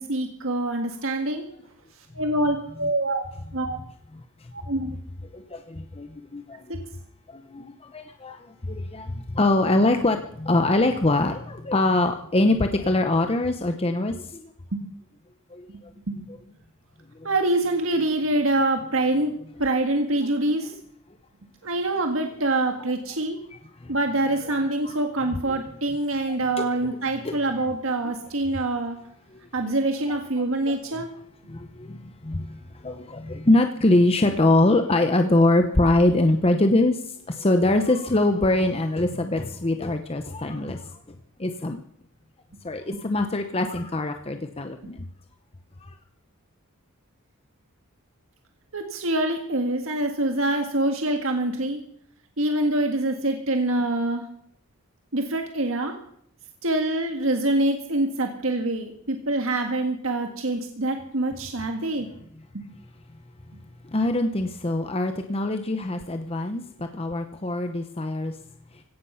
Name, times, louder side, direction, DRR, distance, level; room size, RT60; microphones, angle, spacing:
voice 1, 0.0-1.4 2.1-3.2 3.5-3.8 4.5-5.0 6.7-6.8 14.7-14.8 16.1-16.2 17.2-19.3 19.6-20.7 21.6-23.4 23.9-29.0 29.5-31.1 48.7-51.8 52.4-54.2 55.1-55.9 56.6-62.1 62.5-62.6, right 2 dB, 70° right, 4 dB, 1.7 m, -25 dB
voice 2, 5.3-6.7 7.3-14.5 15.5-15.7 19.3-19.4 23.5-23.9 24.8-25.0 25.5-25.6 26.6-26.7 27.2-27.7 29.3-29.4 30.1-30.2 30.7-30.8 31.5-41.0 41.4-41.8 42.6-45.1 45.8-45.9 63.8-68.4, left 2 dB, 25° left, 6 dB, 0.8 m, -23 dB
17.0 x 14.0 x 5.7 m, 0.68 s
head